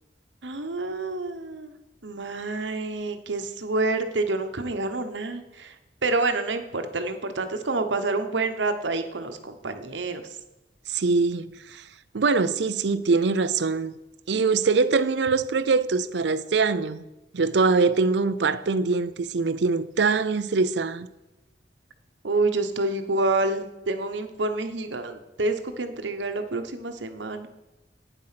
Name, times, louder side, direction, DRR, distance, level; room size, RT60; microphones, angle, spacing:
voice 1, 0.4-1.7 2.0-10.4 22.2-27.5, right 2 dB, 90° right, 1.1 m, -28 dB
voice 2, 10.9-11.8 12.1-14.0 14.3-17.0 17.3-21.1, right 4 dB, 70° right, 0.6 m, -23 dB
9.1 x 7.6 x 5.8 m
head